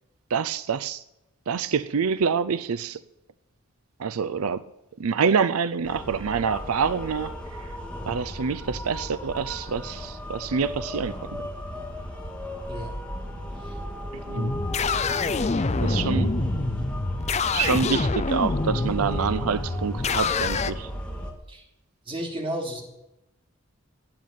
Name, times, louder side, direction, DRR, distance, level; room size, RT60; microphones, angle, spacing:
voice 1, 0.3-1.0 1.5-3.0 4.0-4.6 5.0-7.3 7.6-7.7 8.1-11.5 14.1-14.6 15.8-16.3 17.5-20.9, right 6 dB, 85° right, 0.5 m, -26 dB
sound 1, 5.8-21.3, equal, 5° left, 2.3 m, -34 dB
voice 2, 12.7-13.0 13.5-13.8 21.5-21.7 22.0-22.8, right 1 dB, 25° right, 3.1 m, -33 dB
sound 2, 14.4-20.7, left 4 dB, 30° left, 0.5 m, -27 dB
13.5 x 9.2 x 9.5 m
head